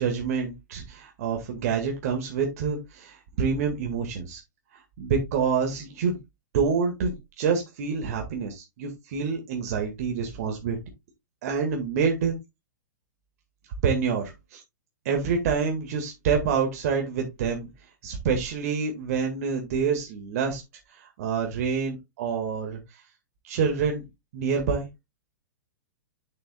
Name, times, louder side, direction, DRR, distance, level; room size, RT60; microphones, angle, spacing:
voice 1, 0.0-4.4 4.7-6.2 6.5-10.8 11.4-12.3 13.8-14.6 15.1-20.6 20.9-23.0 23.4-24.0 24.3-24.9, right 6 dB, 55° right, 3 dB, 1.9 m, -27 dB
9.7 x 6.6 x 2.3 m, 0.20 s
figure-of-eight pair, 110°, 10 cm